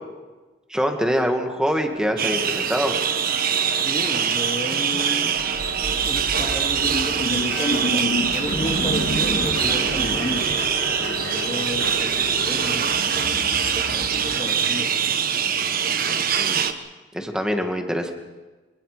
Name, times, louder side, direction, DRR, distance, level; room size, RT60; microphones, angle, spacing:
voice 1, 0.7-3.0 16.4-16.7 17.1-18.1, equal, 5° right, 4 dB, 2.1 m, -24 dB
sound 1, 1.8-11.4, right 3 dB, 75° right, 3.2 m, -37 dB
sound 2, 2.2-16.7, right 7 dB, 50° right, 1.3 m, -23 dB
voice 2, 3.8-5.4 6.0-10.5 11.0-12.9 13.7-14.9, left 1 dB, 25° left, 1 dB, 2.4 m, -32 dB
sound 3, 5.4-14.5, left 1 dB, 65° left, 2.2 m, -31 dB
25.0 x 25.0 x 5.1 m, 1.2 s
head